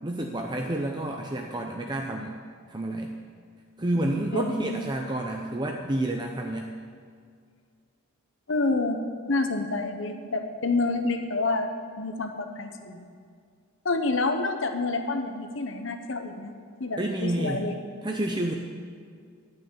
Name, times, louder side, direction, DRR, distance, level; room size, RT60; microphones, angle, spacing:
voice 1, 0.0-2.4 2.7-3.1 3.8-6.7 17.0-17.6 18.0-18.5, right 1 dB, 20° right, 2 dB, 0.6 m, -29 dB
voice 2, 4.3-4.9 8.5-9.0 9.3-11.7 12.0-13.1 13.8-16.5 16.8-17.8, left 3 dB, 60° left, 6 dB, 1.0 m, -28 dB
12.0 x 6.3 x 8.7 m, 2.1 s
head